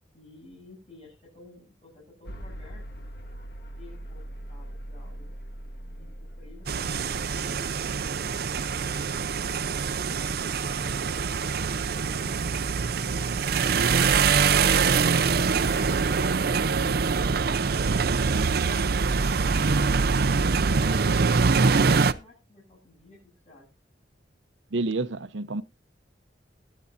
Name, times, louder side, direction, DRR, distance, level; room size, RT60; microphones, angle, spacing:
voice 1, 0.1-3.1 3.8-5.3 5.9-9.7 13.2-13.9 21.5-23.7 25.5-25.6, left 2 dB, 40° left, 7.8 m, -53 dB
sound 1, 2.3-18.2, equal, 60° left, 1.6 m, -45 dB
sound 2, 6.7-22.1, right 5 dB, 55° right, 0.6 m, -24 dB
voice 2, 24.7-25.6, right 3 dB, 85° right, 0.8 m, -29 dB
21.5 x 8.5 x 2.6 m
head